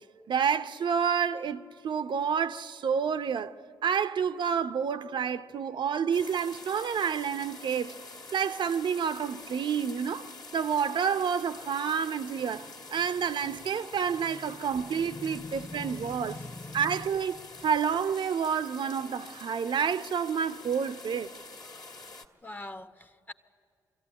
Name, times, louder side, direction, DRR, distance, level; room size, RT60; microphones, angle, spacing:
voice 1, 0.3-3.5 3.8-8.0 8.3-12.7 12.9-16.4 16.7-21.3, right 7 dB, 60° right, 0.7 m, -29 dB
sound 1, 6.1-22.2, left 3 dB, 45° left, 1.9 m, -47 dB
voice 2, 14.8-17.2 21.6-21.8 22.4-23.3, left 2 dB, 20° left, 1.1 m, -43 dB
24.0 x 14.0 x 9.9 m
hypercardioid pair, 45°, 9 cm